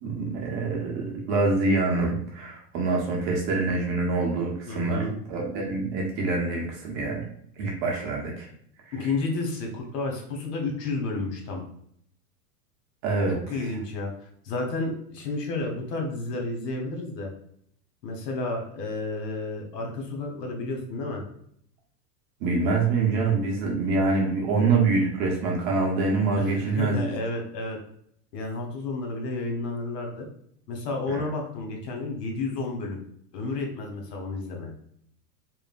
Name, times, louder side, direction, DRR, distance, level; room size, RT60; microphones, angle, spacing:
voice 1, 0.0-7.2 7.6-8.5 8.8-9.1 13.0-13.7 22.4-27.1 31.1-31.3, right 3 dB, 40° right, -1 dB, 0.7 m, -25 dB
voice 2, 4.7-5.1 8.9-11.6 13.5-14.1 14.4-17.3 18.0-21.2 26.4-27.8 28.3-30.3 30.7-33.0 33.3-34.7, left 3 dB, 75° left, 2 dB, 1.0 m, -31 dB
3.0 x 2.0 x 2.4 m, 0.68 s
hypercardioid pair, 120°, 49 cm